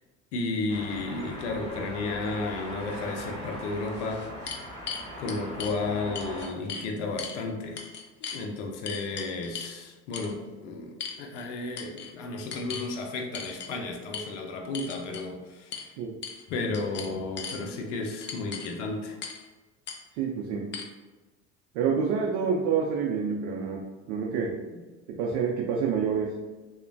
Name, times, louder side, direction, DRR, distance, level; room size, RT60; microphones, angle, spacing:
voice 1, 0.3-4.3 5.2-7.8 8.2-15.9 16.5-19.2, left 3 dB, 85° left, 2 dB, 0.5 m, -33 dB
sound 1, 0.7-6.5, equal, 15° left, 1.1 m, -40 dB
sound 2, 3.9-5.8 6.2-6.9 7.2-7.4 7.8-8.4 8.9-9.8 10.1-10.3 11.0-11.5 11.8-12.1 12.5-12.9 13.3-13.7 14.1-14.3 14.7-15.3 15.7-15.9 16.2-16.5 16.7-17.6 18.2-18.7 19.2-19.4 19.9-20.0 20.7-20.8, left 6 dB, 35° left, 0.4 m, -38 dB
voice 2, 20.2-20.7 21.7-23.8 24.1-24.6 25.1-26.3, right 6 dB, 70° right, -1 dB, 0.5 m, -27 dB
3.0 x 2.1 x 2.6 m, 1.2 s
hypercardioid pair, 75°, 35 cm